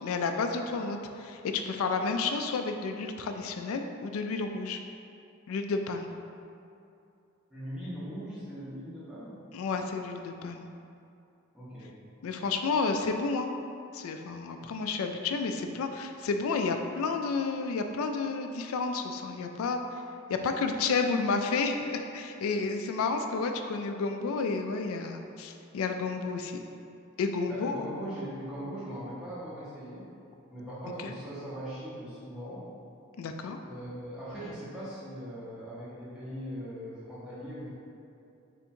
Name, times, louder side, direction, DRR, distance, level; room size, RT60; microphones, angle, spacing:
voice 1, 0.0-4.8 5.5-6.1 9.5-10.7 12.2-13.5 13.9-19.8 20.3-26.6 27.2-27.9 31.0-31.1 33.2-33.6, left 4 dB, 80° left, 5 dB, 0.3 m, -31 dB
voice 2, 7.5-9.4 11.5-11.9 27.5-30.1 30.5-32.6 33.6-37.7, equal, 5° right, -12 dB, 1.1 m, -40 dB
3.5 x 2.7 x 4.3 m, 2.6 s
head